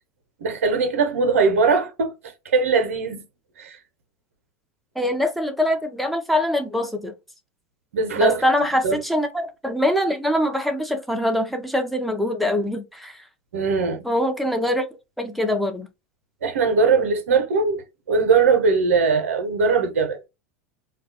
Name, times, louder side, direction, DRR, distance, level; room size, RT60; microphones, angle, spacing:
voice 1, 0.4-2.1 2.4-3.2 3.6-3.8 7.9-8.4 8.8-9.0 13.5-14.1 16.4-20.2, right 4 dB, 80° right, 0.6 m, -20 dB
voice 2, 5.0-7.1 8.2-13.2 14.0-14.8 15.2-15.9, left 1 dB, ahead, 0.6 m, -23 dB
2.2 x 2.1 x 2.7 m
hypercardioid pair, 90°, 8 cm